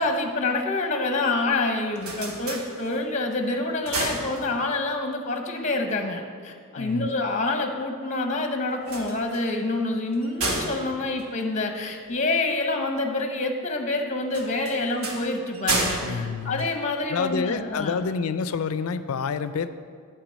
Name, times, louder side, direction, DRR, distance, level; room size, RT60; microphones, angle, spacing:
voice 1, 0.0-18.1, left 2 dB, 35° left, 4 dB, 0.8 m, -27 dB
sound 1, 1.7-3.2 3.6-4.9 8.7-12.2 14.3-17.3, right 2 dB, 85° right, 1.3 m, -32 dB
voice 2, 6.8-7.1 16.0-16.6 17.1-19.7, left 5 dB, 75° left, 12 dB, 0.4 m, -28 dB
8.9 x 4.7 x 7.3 m, 2.1 s
head